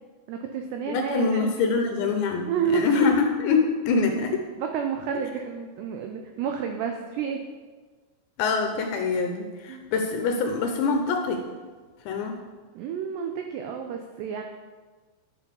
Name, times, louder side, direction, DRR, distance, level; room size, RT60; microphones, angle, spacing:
voice 1, 0.3-1.7 2.4-3.1 4.6-7.4 9.7-9.8 12.8-14.4, right 7 dB, 85° right, 4 dB, 2.4 m, -30 dB
voice 2, 0.9-4.4 8.4-11.4 12.1-12.4, left 4 dB, 75° left, 4 dB, 2.8 m, -24 dB
11.0 x 7.2 x 6.9 m, 1.4 s
omnidirectional pair, 5.9 m